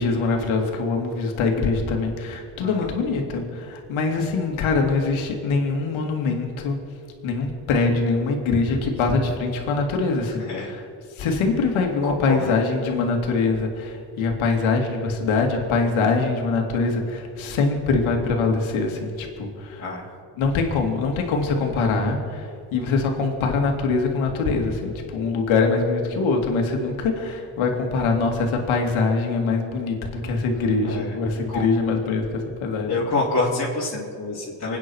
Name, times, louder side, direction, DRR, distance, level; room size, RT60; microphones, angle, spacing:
voice 1, 0.0-6.8 7.2-10.8 11.2-19.5 20.4-22.2 22.7-30.0 30.2-32.2 32.6-33.0, left 4 dB, 75° left, 2 dB, 2.8 m, -23 dB
voice 2, 2.6-2.9 10.4-10.7 12.0-12.5 19.8-20.0 30.9-31.1 31.5-31.6 32.9-34.8, left 3 dB, 35° left, -8 dB, 3.8 m, -27 dB
25.5 x 9.4 x 4.7 m, 2.4 s
supercardioid pair, 60°, 48 cm